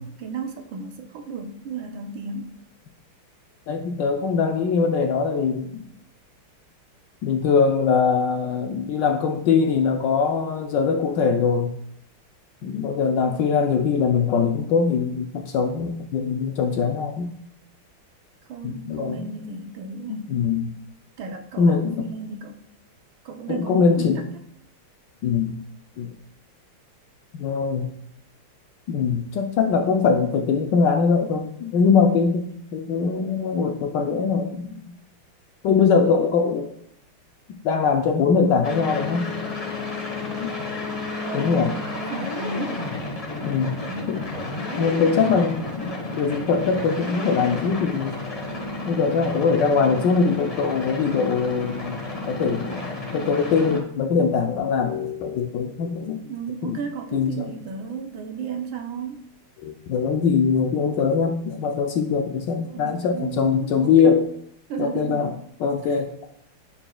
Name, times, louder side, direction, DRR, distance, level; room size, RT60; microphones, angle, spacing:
voice 1, 0.0-2.6 18.5-20.3 21.2-22.6 23.2-24.1 41.2-42.9 43.5-44.2 56.2-59.3 62.6-64.3 64.7-65.4 65.8-66.0, right 4 dB, 75° right, 4 dB, 1.6 m, -34 dB
voice 2, 3.7-5.8 7.2-11.7 12.6-17.3 18.6-19.3 20.3-20.7 21.6-22.1 23.5-24.3 25.2-25.6 26.0-26.1 27.3-27.9 28.9-32.5 32.7-34.8 35.6-36.7 37.6-39.2 40.4-40.5 41.3-41.7 43.4-43.7 44.1-44.2 44.8-48.2 48.9-52.0 52.2-56.2 56.6-56.8 57.1-57.5 59.6-64.3 64.8-65.3 65.6-66.1, left 5 dB, 70° left, 4 dB, 1.1 m, -22 dB
sound 1, 38.6-53.8, left 2 dB, 30° left, 0.7 m, -31 dB
9.8 x 5.7 x 2.3 m, 0.72 s
omnidirectional pair, 2.3 m